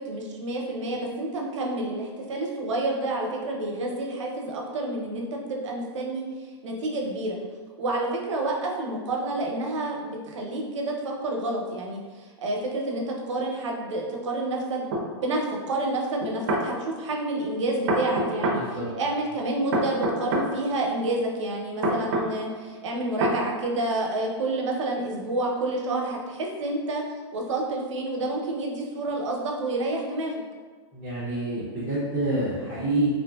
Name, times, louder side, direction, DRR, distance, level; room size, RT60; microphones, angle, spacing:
voice 1, 0.1-6.2 6.6-7.4 7.8-14.9 15.2-18.6 19.0-27.0 27.3-30.4, right 2 dB, 90° right, 0 dB, 0.7 m, -29 dB
sound 1, 14.9-15.1 16.2-16.7 17.9-18.6 19.7-20.5 21.8-22.3 23.2-23.4, right 1 dB, 40° right, 0.5 m, -25 dB
voice 2, 18.5-18.9 30.9-33.1, right 2 dB, 5° left, -13 dB, 0.5 m, -27 dB
2.9 x 2.5 x 2.3 m, 1.5 s
supercardioid pair, 170°, 15 cm